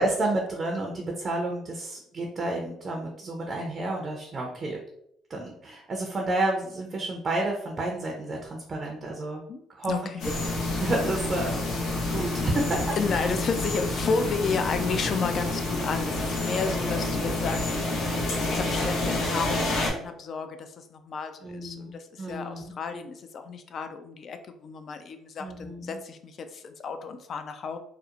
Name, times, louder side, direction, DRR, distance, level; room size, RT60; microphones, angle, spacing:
voice 1, 0.0-4.8 5.3-9.4 9.7-9.9 10.8-11.6 12.1-12.8 13.1-13.3 21.4-22.7 25.4-26.0, right 2 dB, 40° right, 0 dB, 0.5 m, -30 dB
voice 2, 9.5-10.2 12.4-12.5 13.0-27.8, left 5 dB, 50° left, 8 dB, 0.3 m, -32 dB
sound 1, 10.2-19.9, left 2 dB, 70° left, 0.8 m, -28 dB
2.8 x 2.0 x 2.4 m, 0.73 s
supercardioid pair, 85°, 0 cm